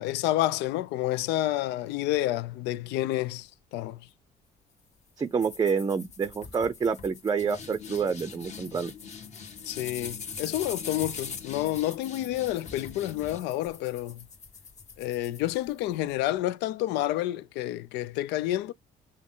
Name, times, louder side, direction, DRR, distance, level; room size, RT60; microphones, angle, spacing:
voice 1, 0.0-4.1 9.7-14.3 15.0-18.7, left 14 dB, 90° left, 0.4 m, -29 dB
voice 2, 5.2-8.9, right 6 dB, 25° right, 0.5 m, -28 dB
sound 1, 5.4-15.9, left 6 dB, 45° left, 1.6 m, -42 dB
6.0 x 2.1 x 3.7 m
cardioid pair, 110°, 17 cm